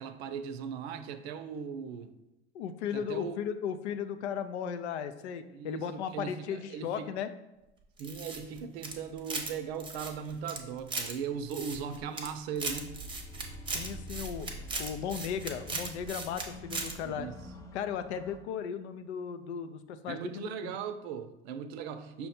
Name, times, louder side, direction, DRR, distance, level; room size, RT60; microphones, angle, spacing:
voice 1, 0.0-2.1 2.9-3.4 5.5-7.1 8.0-12.9 17.0-17.4 20.1-22.3, right 7 dB, 65° right, 9 dB, 0.6 m, -38 dB
voice 2, 2.5-7.3 13.7-14.5 14.8-17.3 17.7-20.7, left 8 dB, 80° left, 10 dB, 0.5 m, -36 dB
sound 1, 8.0-9.5 9.8-11.1 11.5-12.3 12.6-16.4 16.7-16.9, right 3 dB, 15° right, 0.7 m, -37 dB
sound 2, 12.7-18.4, equal, 10° left, 0.3 m, -46 dB
5.5 x 2.2 x 4.2 m, 0.94 s
hypercardioid pair, 100°, 33 cm